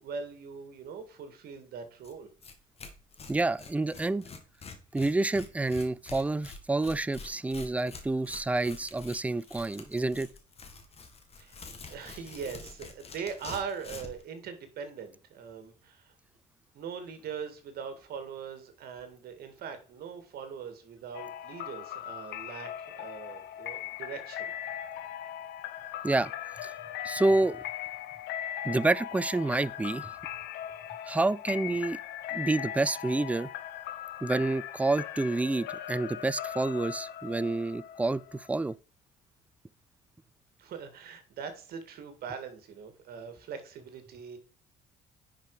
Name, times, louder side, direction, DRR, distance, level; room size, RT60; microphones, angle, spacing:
voice 1, 0.0-2.3 11.4-16.1 16.7-22.7 23.0-24.5 40.6-44.4, right 6 dB, 65° right, 2.2 m, -41 dB
Tearing, 2.0-2.1 2.4-2.5 2.8-14.2, left 4 dB, 35° left, 2.0 m, -46 dB
voice 2, 3.3-4.3 4.9-10.3 26.0-26.3 26.6-26.7 27.0-27.6 28.6-30.2 31.1-32.0 32.3-33.5 34.2-38.8, right 2 dB, 10° right, 0.4 m, -28 dB
sound 1, 21.1-38.7, left 11 dB, 75° left, 0.9 m, -39 dB
10.5 x 5.1 x 4.9 m
cardioid pair, 110°, 17 cm